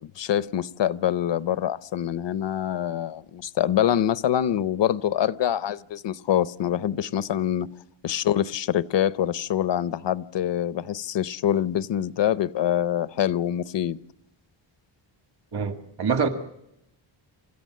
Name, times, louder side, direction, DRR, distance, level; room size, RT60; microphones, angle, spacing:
voice 1, 0.0-7.7 8.0-14.0, left 10 dB, 65° left, 0.8 m, -25 dB
voice 2, 15.5-16.3, right 6 dB, 55° right, 2.1 m, -25 dB
29.5 x 14.0 x 7.5 m
wide cardioid pair, 150°, 47 cm